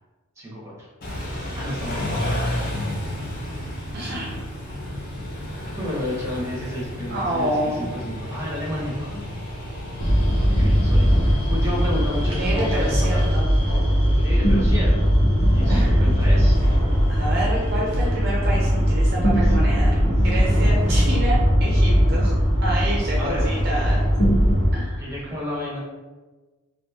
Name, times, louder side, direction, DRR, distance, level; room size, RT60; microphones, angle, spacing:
voice 1, 0.4-0.9 1.5-2.7 5.7-9.4 10.3-13.3 14.1-15.2 15.5-16.6 18.7-18.8 19.3-19.5 23.2-23.6 25.0-25.8, left 1 dB, 15° right, -6 dB, 0.8 m, -32 dB
Car / Idling / Accelerating revving vroom, 1.0-13.3, left 1 dB, 40° left, 0.5 m, -32 dB
voice 2, 3.9-4.4 7.1-7.9 12.2-13.4 15.7-15.9 17.1-22.3 22.6-24.0 24.7-25.0, right 1 dB, 50° right, -4 dB, 0.4 m, -28 dB
sound 1, 10.0-24.7, equal, 85° left, 1.1 m, -19 dB
2.9 x 2.3 x 2.3 m, 1.3 s
head